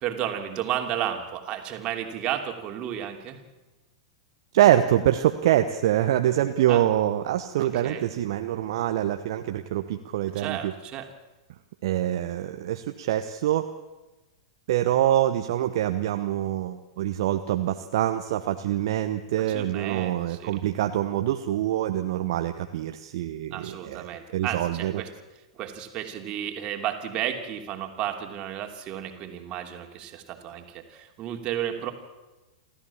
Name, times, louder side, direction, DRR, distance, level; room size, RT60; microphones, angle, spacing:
voice 1, 0.0-3.4 6.7-6.8 7.6-8.0 10.3-11.1 19.4-20.6 23.5-25.1 25.5-31.9, right 10 dB, 35° right, 4 dB, 3.1 m, -33 dB
voice 2, 4.5-10.7 11.8-13.7 14.7-25.0, right 12 dB, 55° right, 7 dB, 1.1 m, -25 dB
28.5 x 14.0 x 7.2 m, 1.1 s
figure-of-eight pair, 100°, 3 cm